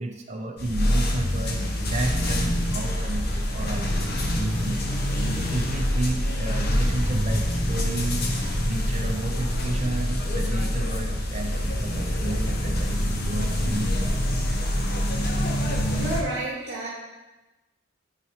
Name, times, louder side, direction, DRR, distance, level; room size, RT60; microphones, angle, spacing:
voice 1, 0.0-1.6 1.9-4.8 5.3-8.3 8.7-14.3, right 2 dB, 35° right, 3 dB, 0.7 m, -32 dB
sound 1, 0.6-16.2, equal, 55° left, 0.9 m, -25 dB
voice 2, 15.6-16.9, right 1 dB, 60° right, -6 dB, 1.2 m, -31 dB
9.6 x 4.1 x 2.9 m, 1.1 s
head